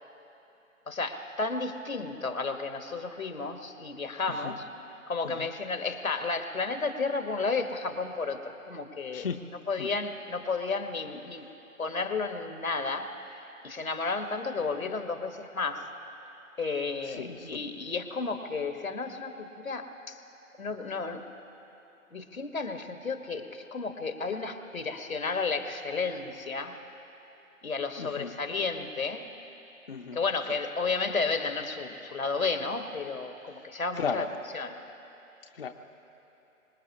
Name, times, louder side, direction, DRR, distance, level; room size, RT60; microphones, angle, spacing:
voice 1, 0.9-4.7 5.1-11.5 11.8-15.9 16.6-20.2 20.6-21.2 22.1-26.7 27.6-29.3 30.1-34.2 34.5-34.8, left 4 dB, 80° left, 7 dB, 1.4 m, -32 dB
voice 2, 17.0-17.6 28.0-28.3 29.9-30.2 34.0-34.3 35.5-35.7, left 6 dB, 45° left, 6 dB, 0.6 m, -35 dB
25.0 x 20.0 x 2.9 m, 3.0 s
figure-of-eight pair, 140°, 41 cm